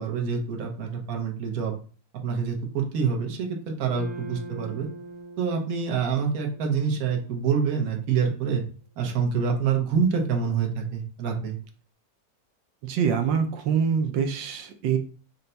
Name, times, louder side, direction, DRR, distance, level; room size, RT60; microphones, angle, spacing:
voice 1, 0.0-1.7 2.2-4.9 5.4-8.6 9.0-11.6, right 6 dB, 55° right, 2 dB, 1.2 m, -26 dB
sound 1, 3.9-8.3, right 3 dB, 10° left, 0.7 m, -43 dB
voice 2, 12.8-15.0, right 7 dB, 80° right, 5 dB, 1.3 m, -25 dB
5.5 x 2.2 x 3.9 m, 0.40 s
omnidirectional pair, 2.0 m